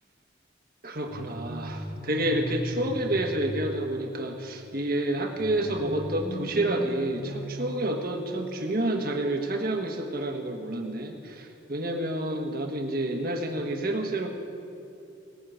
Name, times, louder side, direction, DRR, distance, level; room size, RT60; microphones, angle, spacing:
voice 1, 0.8-14.3, right 1 dB, 50° right, 3 dB, 1.4 m, -29 dB
sound 1, 1.1-4.2 5.4-8.3, equal, 5° left, 1.3 m, -37 dB
18.0 x 6.5 x 8.9 m, 2.8 s
head